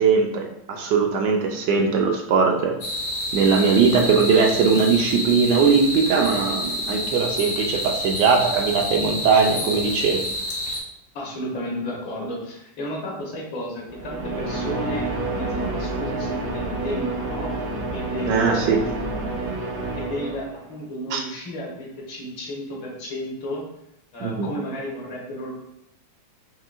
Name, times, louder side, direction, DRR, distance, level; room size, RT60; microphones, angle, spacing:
voice 1, 0.0-2.7 3.3-10.2 18.3-18.8 21.1-21.2 24.2-24.5, right 5 dB, 75° right, 2 dB, 1.1 m, -20 dB
sound 1, 2.8-10.8, left 1 dB, 55° left, 0.8 m, -28 dB
voice 2, 11.1-17.5 17.9-19.6 20.0-23.7 24.1-25.5, left 1 dB, 75° left, -3 dB, 1.7 m, -33 dB
sound 2, 13.9-20.8, right 2 dB, 55° right, 0.8 m, -29 dB
5.5 x 2.6 x 2.3 m, 0.80 s
omnidirectional pair, 2.1 m